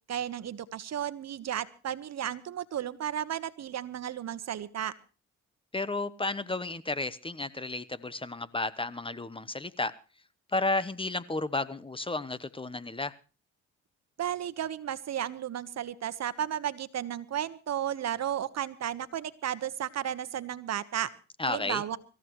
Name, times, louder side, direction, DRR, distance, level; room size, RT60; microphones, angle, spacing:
voice 1, 0.1-4.9 14.2-21.1 21.5-22.0, right 10 dB, 60° right, 14 dB, 1.3 m, -33 dB
voice 2, 5.7-9.9 10.5-13.1 21.4-21.8, left 2 dB, 15° left, 16 dB, 1.0 m, -32 dB
24.5 x 15.0 x 3.1 m, 0.35 s
cardioid pair, 90°, 30 cm